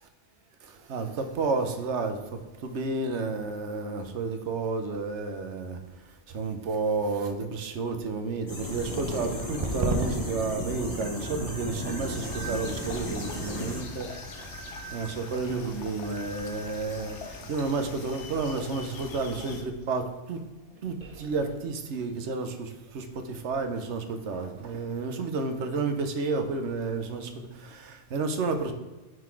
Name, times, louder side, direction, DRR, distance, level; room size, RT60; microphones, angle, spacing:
voice 1, 0.9-2.2 2.6-5.8 6.3-14.1 14.9-17.2 17.5-20.4 20.8-28.7, right 3 dB, 75° right, 7 dB, 1.2 m, -31 dB
sound 1, 8.5-13.8, equal, 30° left, 1.8 m, -35 dB
sound 2, 8.7-19.5 19.8-20.1 20.6-21.6, right 2 dB, 35° right, 0.7 m, -39 dB
sound 3, 12.2-19.6, left 4 dB, 75° left, 1.2 m, -43 dB
9.5 x 4.0 x 4.7 m, 1.2 s
omnidirectional pair, 1.2 m